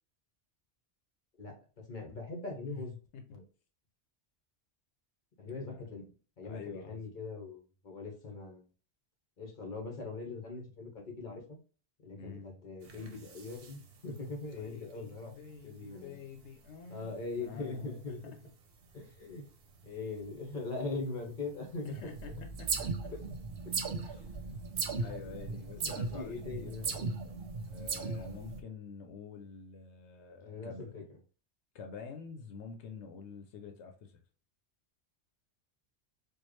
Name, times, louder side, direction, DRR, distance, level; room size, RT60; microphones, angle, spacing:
voice 1, 1.4-3.0 3.3-3.4 5.4-6.0 6.4-8.7 9.4-11.6 12.0-15.3 15.6-16.2 16.9-18.2 18.9-19.4 19.8-22.0 23.1-23.2 23.6-23.7 25.7-27.2 30.4-31.0, left 3 dB, 50° left, 1 dB, 1.3 m, -41 dB
voice 2, 5.4-5.9 6.4-7.0 12.2-12.6 14.5-18.2 21.8-22.3 22.6-23.1 24.0-24.4 25.0-27.0 27.7-30.9 31.7-34.2, left 5 dB, 85° left, 4 dB, 0.9 m, -48 dB
sound 1, 12.8-15.2 15.4-15.6 15.9-16.0 16.1-16.6 16.9-18.2 18.6-21.5 21.9-28.6, right 4 dB, 65° right, 0.9 m, -39 dB
4.5 x 2.3 x 3.1 m, 0.38 s
omnidirectional pair, 1.1 m